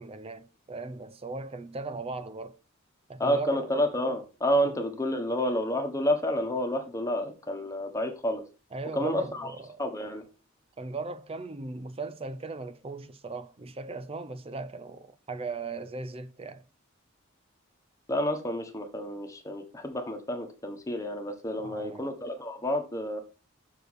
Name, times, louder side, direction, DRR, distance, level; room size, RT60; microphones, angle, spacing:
voice 1, 0.0-2.6 3.1-3.6 4.6-4.7 8.7-9.8 10.8-16.6 21.6-22.1, right 3 dB, 30° right, 0.6 m, -38 dB
voice 2, 3.2-8.4 8.9-9.5 9.8-10.2 18.1-23.2, equal, 15° left, 1.4 m, -29 dB
6.7 x 4.6 x 6.2 m
head